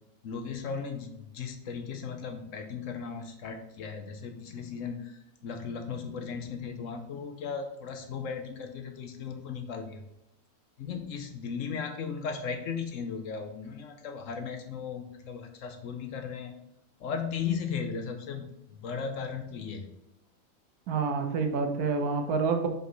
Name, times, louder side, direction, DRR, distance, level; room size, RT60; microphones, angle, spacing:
voice 1, 0.2-10.0 10.8-16.5 17.0-19.9, left 6 dB, 65° left, 5 dB, 1.0 m, -36 dB
voice 2, 20.9-22.7, right 4 dB, 80° right, 5 dB, 1.3 m, -28 dB
5.2 x 4.7 x 3.9 m, 0.84 s
omnidirectional pair, 1.6 m